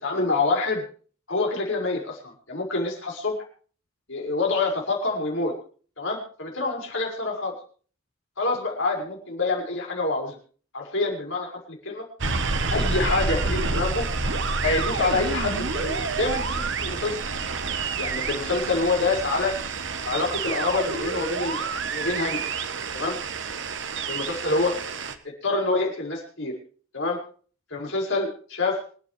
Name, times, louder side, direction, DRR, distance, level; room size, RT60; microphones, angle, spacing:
voice 1, 0.0-0.8 1.3-3.4 4.1-5.5 6.0-7.5 8.4-10.4 10.7-12.0 12.7-14.0 14.6-17.2 18.0-19.5 20.0-22.4 22.9-23.2 24.1-24.7 25.4-26.5 26.9-27.2 27.7-28.8, left 3 dB, 70° left, 0 dB, 5.8 m, -26 dB
sound 1, 12.2-25.1, right 4 dB, 65° right, 1.2 m, -28 dB
26.5 x 9.8 x 3.4 m, 0.41 s
head